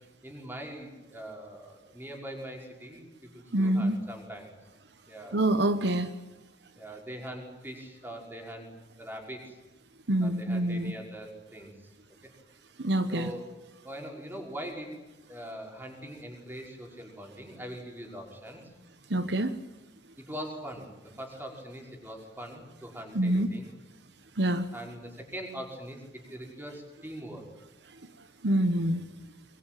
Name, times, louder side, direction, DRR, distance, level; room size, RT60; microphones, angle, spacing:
voice 1, 0.2-4.5 5.1-5.4 6.8-8.7 9.0-9.6 10.2-11.7 13.1-13.4 13.8-14.9 15.3-18.7 20.2-23.7 24.7-27.4, equal, 10° right, 1 dB, 5.4 m, -42 dB
voice 2, 3.5-4.0 5.3-6.1 10.1-10.9 12.8-13.3 19.1-19.5 23.1-23.5 24.4-24.7 28.4-29.0, right 1 dB, 70° right, 10 dB, 1.1 m, -26 dB
24.0 x 22.0 x 9.2 m, 1.1 s
head